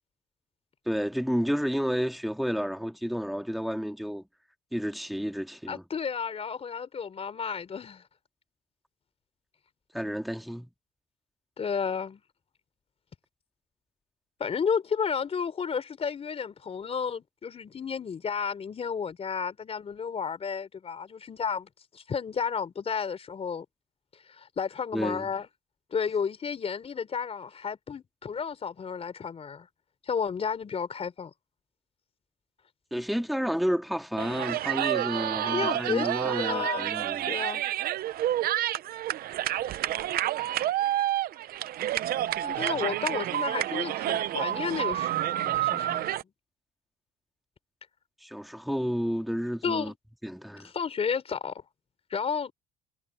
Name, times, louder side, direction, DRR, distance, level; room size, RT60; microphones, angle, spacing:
voice 1, 0.9-4.2 4.7-5.8 9.9-10.7 24.9-25.3 32.9-37.3 48.2-49.9 50.2-50.7, equal, ahead, 2.8 m, -31 dB
voice 2, 5.7-8.0 11.6-12.2 14.4-23.7 24.3-25.5 25.9-29.7 30.0-31.3 35.4-36.9 37.3-37.6 42.4-46.1 49.6-49.9 50.6-51.5 52.1-52.5, left 6 dB, 35° left, 4.2 m, -32 dB
sound 1, 34.2-46.2, right 13 dB, 65° right, 0.8 m, -29 dB
cardioid pair, 110°, 17 cm